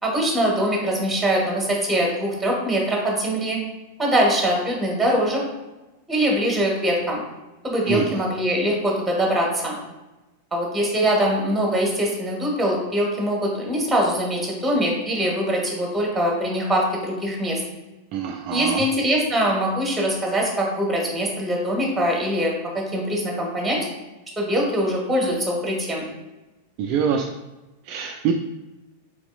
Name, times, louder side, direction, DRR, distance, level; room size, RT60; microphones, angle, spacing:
voice 1, 0.0-3.6 4.0-5.4 6.1-7.2 7.6-9.7 10.5-17.6 18.5-23.8 24.4-26.1, equal, 10° right, -2 dB, 1.3 m, -23 dB
voice 2, 7.9-8.2 18.1-18.9 26.8-27.3 27.9-28.3, right 7 dB, 40° right, 3 dB, 0.3 m, -24 dB
4.2 x 4.0 x 2.3 m, 1.1 s
figure-of-eight pair, 90°, 0 cm